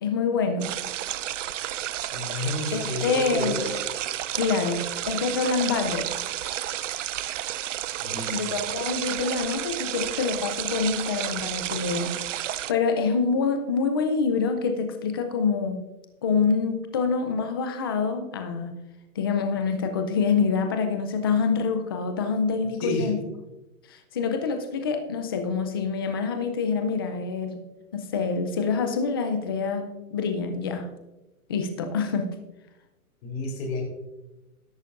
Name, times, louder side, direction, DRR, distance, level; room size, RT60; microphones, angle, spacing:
voice 1, 0.0-0.7 2.7-3.6 4.4-6.1 8.3-15.8 16.2-18.8 19.2-23.2 23.9-27.6 27.9-30.9 31.5-32.3, left 5 dB, 15° left, 7 dB, 0.4 m, -26 dB
sound 1, 0.6-12.7, right 12 dB, 55° right, 0.6 m, -31 dB
voice 2, 2.1-3.7 8.0-8.6 22.8-23.1 33.2-33.8, left 2 dB, 40° left, 2 dB, 3.5 m, -31 dB
13.0 x 11.5 x 2.5 m, 1.0 s
hypercardioid pair, 140°, 45 cm